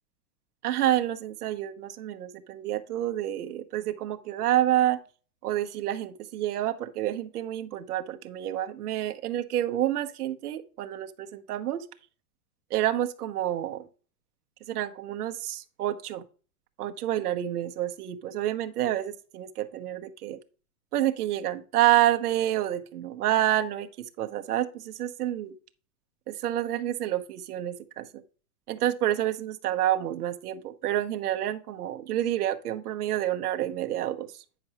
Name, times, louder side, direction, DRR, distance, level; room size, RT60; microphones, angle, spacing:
voice 1, 0.6-5.0 5.4-11.8 12.7-13.8 14.7-16.2 16.8-20.4 20.9-23.9 24.2-25.5 26.3-28.1 28.7-34.3, right 13 dB, 85° right, 1.1 m, -28 dB
9.4 x 6.0 x 3.0 m
supercardioid pair, 160°, 44 cm